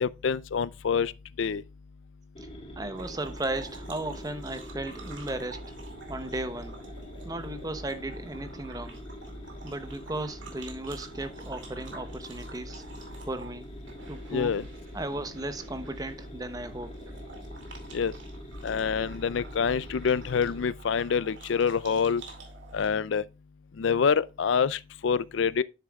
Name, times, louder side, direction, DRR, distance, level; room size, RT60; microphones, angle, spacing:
voice 1, 0.0-1.1 1.4-1.6 14.3-14.7 17.9-18.1 18.6-22.2 22.7-23.2 23.8-25.6, left 6 dB, 70° left, 0.4 m, -26 dB
sound 1, 2.3-20.6, equal, 30° left, 1.6 m, -45 dB
voice 2, 2.8-5.6 6.1-6.8 7.2-9.0 9.6-12.8 13.3-13.7 14.1-14.6 14.9-16.9, right 2 dB, 20° right, 0.8 m, -35 dB
sound 2, 2.9-22.9, right 1 dB, 65° right, 2.4 m, -46 dB
9.3 x 7.5 x 2.3 m
head